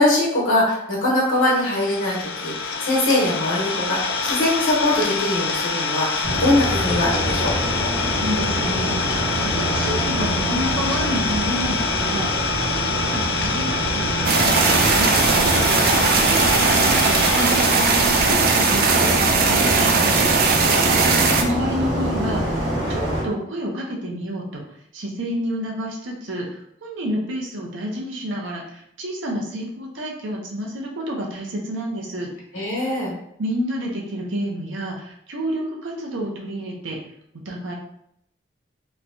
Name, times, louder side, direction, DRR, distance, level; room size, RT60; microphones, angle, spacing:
voice 1, 0.0-7.5 20.8-21.5 32.5-33.1, left 1 dB, 90° left, -4 dB, 1.2 m, -22 dB
Idling, 1.4-19.1, left 4 dB, 75° left, 0.4 m, -26 dB
sound 1, 6.2-23.2, equal, 65° right, 1.3 m, -26 dB
voice 2, 8.1-20.3 21.4-22.6 22.9-24.6 24.9-32.3 33.4-37.0 37.4-37.7, equal, 85° right, -1 dB, 0.7 m, -29 dB
sound 2, 14.2-21.4, right 4 dB, 50° right, 0.3 m, -18 dB
3.1 x 2.2 x 2.6 m, 0.74 s
head